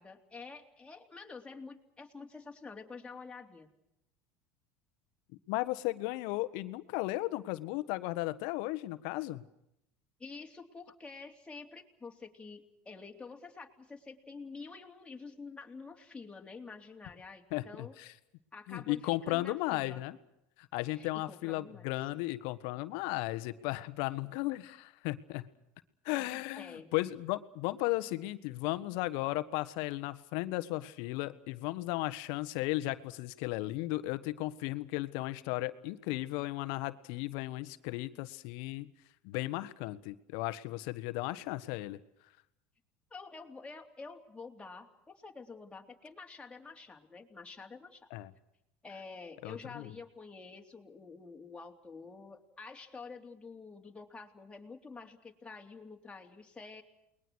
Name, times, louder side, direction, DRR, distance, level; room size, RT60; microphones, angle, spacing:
voice 1, 0.0-3.7 10.2-17.9 18.5-20.0 20.9-21.9 26.3-26.9 43.1-48.1 48.8-56.8, left 4 dB, 15° left, 2 dB, 3.5 m, -48 dB
voice 2, 5.5-9.4 17.5-18.1 18.7-20.2 20.6-25.5 26.0-38.9 39.2-42.0 48.1-48.3 49.4-49.9, left 19 dB, 70° left, 13 dB, 1.4 m, -35 dB
29.0 x 21.0 x 6.3 m, 0.82 s
supercardioid pair, 100°, 8 cm